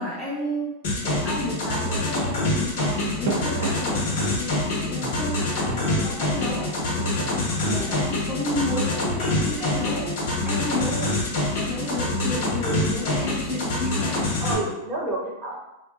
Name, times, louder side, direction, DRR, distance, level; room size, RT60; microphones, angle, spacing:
voice 1, 0.0-7.0 7.3-11.1 11.5-14.4, left 1 dB, 5° left, -7 dB, 0.5 m, -32 dB
sound 1, 0.8-14.6, left 2 dB, 65° left, 1.0 m, -26 dB
sound 2, 2.6-4.5 5.0-8.3, right 3 dB, 65° right, 0.5 m, -34 dB
voice 2, 7.6-8.0 14.4-15.6, right 2 dB, 30° right, -4 dB, 0.9 m, -30 dB
2.7 x 2.2 x 2.3 m, 0.92 s
hypercardioid pair, 125°, 0 cm